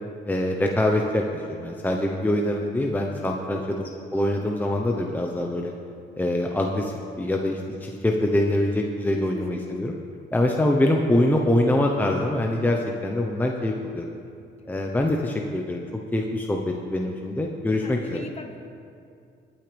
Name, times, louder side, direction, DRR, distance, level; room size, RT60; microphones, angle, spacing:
voice 1, 0.3-3.8 4.1-5.7 6.2-9.9 10.3-14.1 14.7-18.2, left 1 dB, 10° left, 1 dB, 1.0 m, -24 dB
voice 2, 9.2-9.8 17.8-18.6, left 3 dB, 35° left, 4 dB, 1.5 m, -37 dB
20.5 x 9.4 x 3.5 m, 2.4 s
cardioid pair, 90°, 19 cm